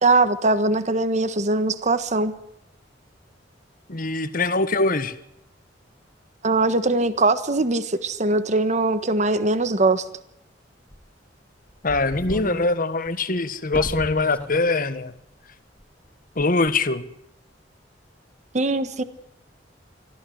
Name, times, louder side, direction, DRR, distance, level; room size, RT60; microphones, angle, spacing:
voice 1, 0.0-2.3 6.4-10.0 18.5-19.0, right 2 dB, 40° right, 12 dB, 1.4 m, -21 dB
voice 2, 3.9-5.1 11.8-15.1 16.3-17.0, left 3 dB, 50° left, 12 dB, 1.5 m, -23 dB
sound 1, 10.9-11.1 11.7-12.7 13.0-13.1 13.7-14.6 14.9-15.0 15.8-16.1 16.4-16.7, equal, 5° left, 1.4 m, -35 dB
24.5 x 15.0 x 7.9 m, 0.78 s
head